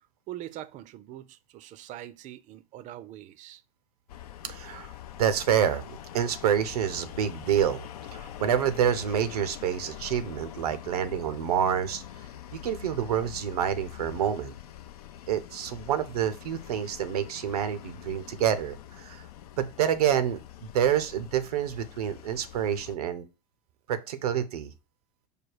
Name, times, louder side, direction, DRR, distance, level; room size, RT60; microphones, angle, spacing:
voice 1, 0.3-3.6, right 13 dB, 40° right, 0.4 m, -43 dB
sound 1, 4.1-23.0, left 11 dB, 85° left, 0.4 m, -44 dB
voice 2, 4.4-4.9 5.2-7.8 8.1-12.0 12.6-14.5 15.3-19.2 19.6-23.3 23.9-24.7, right 9 dB, 85° right, 0.6 m, -27 dB
4.9 x 2.3 x 4.6 m
hypercardioid pair, 100°, 19 cm